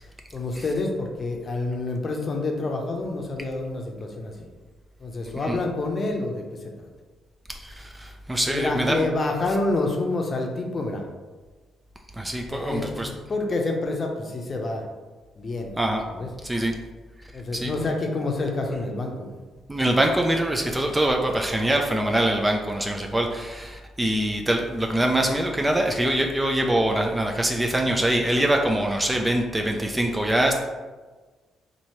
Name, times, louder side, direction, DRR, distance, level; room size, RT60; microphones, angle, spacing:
voice 1, 0.3-4.3 5.0-6.4 6.8-6.9 8.5-11.0 12.5-14.8 15.4-15.7 16.1-16.3 17.3-19.3, left 2 dB, 40° left, 2 dB, 0.7 m, -28 dB
voice 2, 7.5-9.1 12.2-13.1 15.8-16.0 16.4-16.7 17.2-17.7 19.7-30.6, right 1 dB, 15° right, 2 dB, 0.4 m, -24 dB
2.9 x 2.7 x 4.3 m, 1.3 s
cardioid pair, 90°, 0 cm